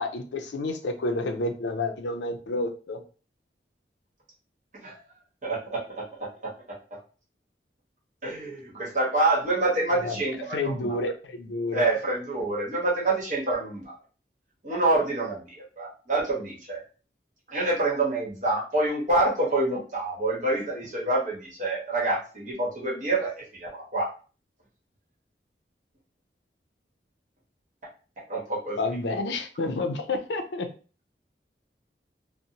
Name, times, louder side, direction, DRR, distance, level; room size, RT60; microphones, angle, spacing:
voice 1, 0.0-3.0 9.9-10.2 10.5-11.9 28.8-30.7, left 2 dB, 85° left, 6 dB, 0.4 m, -29 dB
voice 2, 5.4-5.8 8.2-11.0 11.7-14.0 14.6-16.8 17.5-24.1 28.3-28.8, right 2 dB, 45° right, -4 dB, 1.0 m, -27 dB
2.6 x 2.0 x 2.8 m, 0.37 s
head